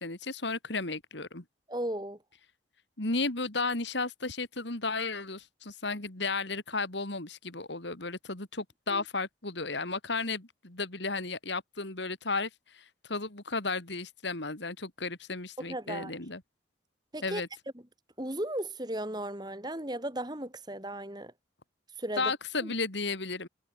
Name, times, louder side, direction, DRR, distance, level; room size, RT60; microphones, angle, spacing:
voice 1, 0.0-1.4 3.0-16.4 17.2-17.5 22.2-23.5, left 3 dB, 65° left, 2.9 m, -34 dB
voice 2, 1.7-2.2 8.9-9.0 15.7-16.1 17.1-17.4 18.2-21.3 22.0-22.3 22.6-22.7, right 1 dB, 20° right, 2.8 m, -35 dB
head